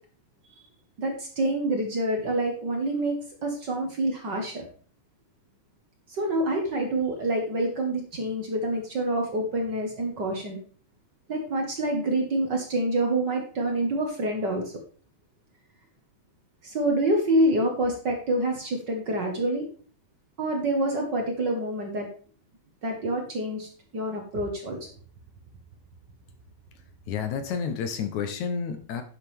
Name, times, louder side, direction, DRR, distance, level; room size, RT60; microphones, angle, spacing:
voice 1, 1.0-4.6 6.1-10.6 11.3-14.7 16.6-19.7 20.4-22.1 22.8-24.8, right 1 dB, 45° right, 2 dB, 1.7 m, -27 dB
voice 2, 27.1-29.0, left 6 dB, 70° left, 8 dB, 2.2 m, -30 dB
11.0 x 7.5 x 3.5 m, 0.42 s
omnidirectional pair, 3.7 m